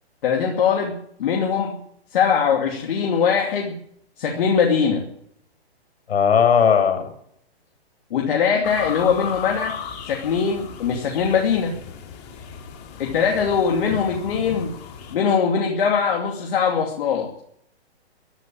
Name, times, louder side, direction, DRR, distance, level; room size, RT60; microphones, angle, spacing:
voice 1, 0.2-1.8 2.1-3.8 4.2-5.1 8.1-9.8 10.1-11.7 13.0-14.8 15.1-17.3, left 6 dB, 55° left, 0 dB, 2.7 m, -21 dB
voice 2, 6.1-7.0, left 7 dB, 70° left, 7 dB, 6.4 m, -17 dB
sound 1, 8.6-15.1, left 6 dB, 40° left, 3.4 m, -36 dB
15.0 x 11.0 x 8.8 m, 0.71 s
hypercardioid pair, 150°, 32 cm